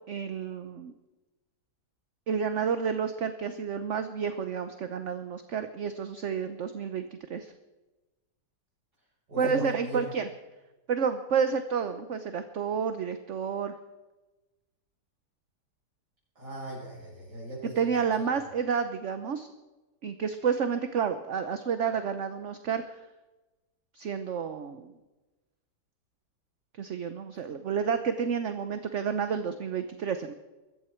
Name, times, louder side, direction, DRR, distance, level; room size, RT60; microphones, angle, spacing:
voice 1, 0.1-0.9 2.3-7.5 9.4-10.3 10.9-13.7 17.8-19.5 20.0-22.8 23.9-24.9 26.8-30.3, right 6 dB, 55° right, 9 dB, 1.1 m, -30 dB
voice 2, 9.3-10.1 16.4-17.8 18.1-18.4, equal, 85° right, -8 dB, 7.3 m, -39 dB
23.0 x 14.0 x 4.5 m, 1.1 s
omnidirectional pair, 1.8 m